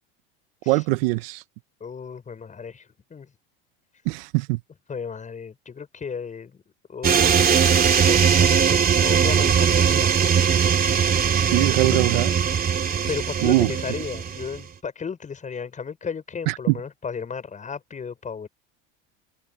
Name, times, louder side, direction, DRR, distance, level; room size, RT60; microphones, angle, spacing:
voice 1, 0.7-1.4 4.0-4.6 11.4-12.3 13.4-13.7 16.5-16.8, right 22 dB, 75° right, 1.3 m, -22 dB
voice 2, 1.8-3.3 4.9-6.6 6.9-10.1 11.9-12.1 13.1-18.5, left 6 dB, 25° left, 7.0 m, -34 dB
sound 1, 7.0-14.6, right 7 dB, 30° right, 3.0 m, -20 dB
supercardioid pair, 105°, 30 cm